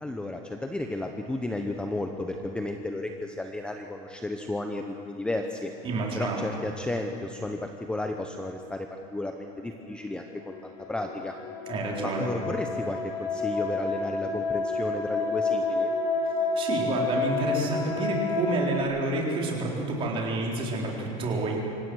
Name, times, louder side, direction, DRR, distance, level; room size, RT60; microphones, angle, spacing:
voice 1, 0.0-5.7 6.1-11.4 12.0-15.9, left 2 dB, 5° left, 4 dB, 0.8 m, -33 dB
voice 2, 5.8-6.5 11.7-12.3 16.6-21.6, right 2 dB, 30° right, -2 dB, 4.0 m, -29 dB
sound 1, 10.5-18.8, left 3 dB, 60° left, 2.4 m, -29 dB
26.5 x 16.0 x 6.3 m, 2.8 s
cardioid pair, 155°, 17 cm